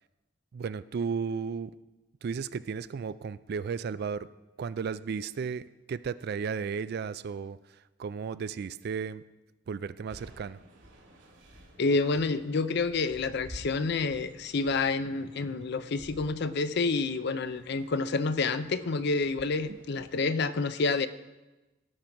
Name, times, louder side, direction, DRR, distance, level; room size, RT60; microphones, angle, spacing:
voice 1, 0.5-1.7 2.2-4.3 4.6-9.2 9.7-10.6 19.7-19.8, right 6 dB, 55° right, 15 dB, 0.4 m, -34 dB
sound 1, 10.1-20.2, equal, 80° right, 2.4 m, -52 dB
voice 2, 11.8-21.1, left 3 dB, 60° left, 13 dB, 0.6 m, -28 dB
18.0 x 6.1 x 5.2 m, 1.1 s
head